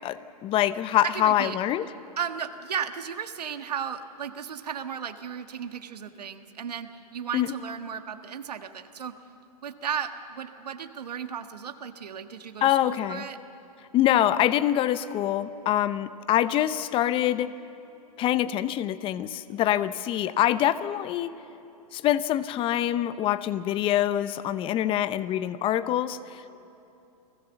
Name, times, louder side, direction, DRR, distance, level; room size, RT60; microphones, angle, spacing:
voice 1, 0.0-1.9 7.3-7.5 12.6-13.2 13.9-17.5 18.2-21.3 21.9-26.5, left 12 dB, 25° left, 15 dB, 0.7 m, -25 dB
voice 2, 1.0-1.6 2.2-9.1 9.6-13.4, right 8 dB, 85° right, 8 dB, 1.5 m, -35 dB
29.5 x 18.5 x 7.0 m, 2.9 s
hypercardioid pair, 125°, 20 cm